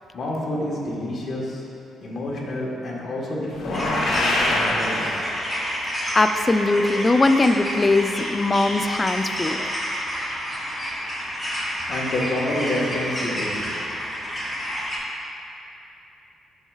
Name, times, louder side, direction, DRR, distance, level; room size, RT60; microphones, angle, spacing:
voice 1, 0.1-1.7 2.0-5.3 11.9-13.9, left 1 dB, 55° left, -4 dB, 1.3 m, -29 dB
sound 1, 3.5-5.7, left 1 dB, 80° left, 1.2 m, -24 dB
sound 2, 3.7-15.0, equal, 5° left, 1.4 m, -29 dB
voice 2, 6.2-9.7, left 2 dB, 25° left, 8 dB, 0.3 m, -20 dB
11.0 x 4.5 x 2.4 m, 2.8 s
cardioid pair, 90°, 0 cm